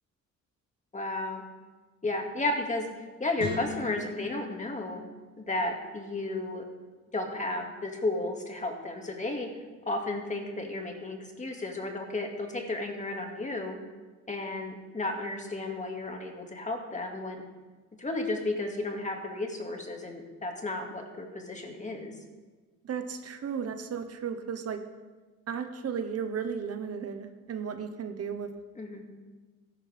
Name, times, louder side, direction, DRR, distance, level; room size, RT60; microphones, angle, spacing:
voice 1, 0.9-1.4 2.0-2.9 3.2-5.0 5.4-6.6 7.1-9.5 9.9-13.8 14.3-17.4 18.0-22.1 28.8-29.0, left 2 dB, 25° left, 2 dB, 2.1 m, -33 dB
sound 1, 3.4-5.7, left 5 dB, 85° left, 2.8 m, -40 dB
voice 2, 22.8-24.8 25.5-28.5, right 7 dB, 55° right, 7 dB, 1.1 m, -34 dB
15.0 x 10.5 x 3.5 m, 1.3 s
cardioid pair, 90°, 30 cm